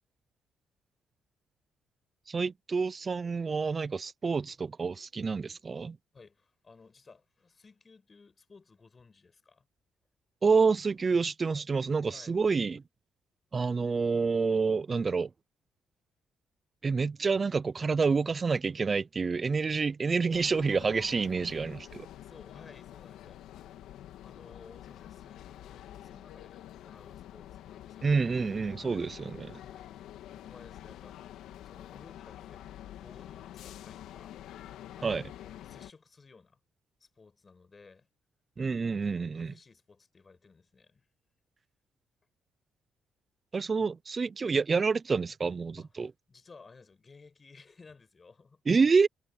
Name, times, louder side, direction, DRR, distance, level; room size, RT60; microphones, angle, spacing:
voice 1, 2.3-6.0 10.4-12.8 13.5-15.3 16.8-22.1 28.0-29.6 35.0-35.3 38.6-39.5 43.5-46.1 48.7-49.1, right 4 dB, 35° right, 0.5 m, -28 dB
voice 2, 6.1-9.7 11.5-11.7 12.1-12.4 22.2-23.8 24.2-28.1 28.9-29.1 29.6-29.9 30.3-31.2 31.6-34.3 35.0-36.6 37.0-38.1 38.8-41.1 43.8-43.9 45.8-48.6, left 4 dB, 30° left, 6.4 m, -56 dB
sound 1, 20.3-35.9, left 12 dB, 85° left, 2.3 m, -47 dB
cardioid pair, 90°, 0 cm